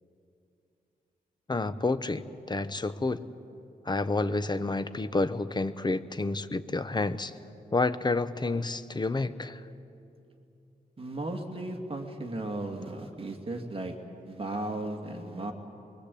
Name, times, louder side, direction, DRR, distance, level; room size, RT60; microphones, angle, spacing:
voice 1, 1.5-3.2 3.9-7.3 7.7-9.6, left 3 dB, 30° left, 12 dB, 0.9 m, -29 dB
voice 2, 11.0-13.9 14.3-15.5, right 2 dB, 35° right, 3 dB, 2.4 m, -35 dB
25.0 x 22.5 x 8.5 m, 2.7 s
wide cardioid pair, 100°, 16 cm